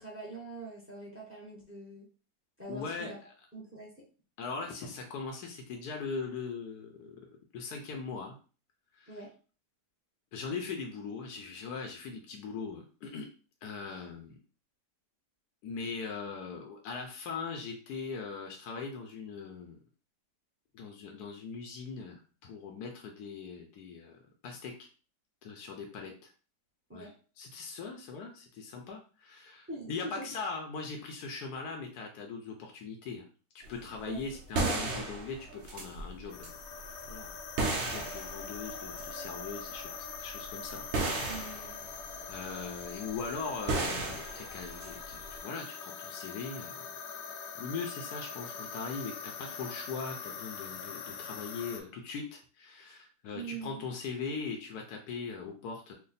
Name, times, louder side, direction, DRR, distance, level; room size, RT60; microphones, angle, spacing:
voice 1, 0.0-2.1 2.6-3.2 3.5-4.0 9.1-9.3 26.9-27.1 29.7-30.3 34.1-34.2 41.3-41.8 53.3-53.8, right 3 dB, 10° right, -3 dB, 0.7 m, -43 dB
voice 2, 2.7-3.1 4.4-7.2 7.5-8.4 8.9-9.2 10.3-13.3 13.6-14.3 15.6-19.8 20.7-24.9 25.4-26.3 26.9-27.1 27.4-33.3 33.7-36.5 37.1-37.3 37.7-41.5 42.3-46.9 47.6-55.9, left 5 dB, 70° left, 2 dB, 1.1 m, -40 dB
sound 1, 33.6-45.4, right 3 dB, 55° right, 0.8 m, -35 dB
sound 2, 36.3-51.8, left 6 dB, 90° left, 1.3 m, -43 dB
3.2 x 2.2 x 3.9 m, 0.37 s
omnidirectional pair, 1.9 m